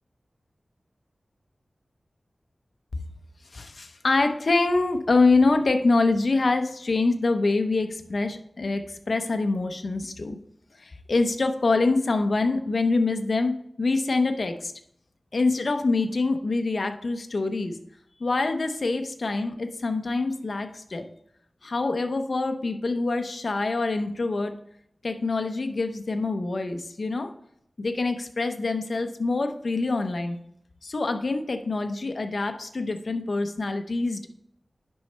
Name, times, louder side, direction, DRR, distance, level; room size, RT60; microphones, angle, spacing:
voice 1, 3.5-10.4 10.8-14.7 15.3-17.8 18.2-21.0 21.6-24.5 25.0-27.3 27.8-30.4 30.8-34.3, left 3 dB, 60° left, 7 dB, 0.8 m, -25 dB
10.0 x 5.5 x 3.3 m, 0.70 s
wide cardioid pair, 70°, 0 cm